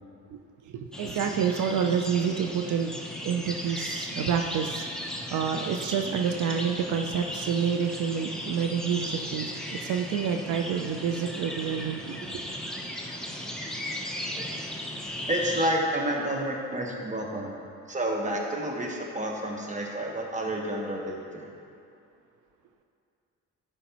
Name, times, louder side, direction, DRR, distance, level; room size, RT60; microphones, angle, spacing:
voice 1, 0.7-2.9 3.2-5.0 5.3-12.4, right 7 dB, 80° right, 5 dB, 0.5 m, -28 dB
sound 1, 0.9-15.7, left 1 dB, ahead, 0.8 m, -36 dB
voice 2, 15.3-17.5 17.9-21.5, right 1 dB, 25° right, 0 dB, 1.3 m, -30 dB
12.5 x 5.1 x 3.0 m, 2.5 s
cardioid pair, 90°, 30 cm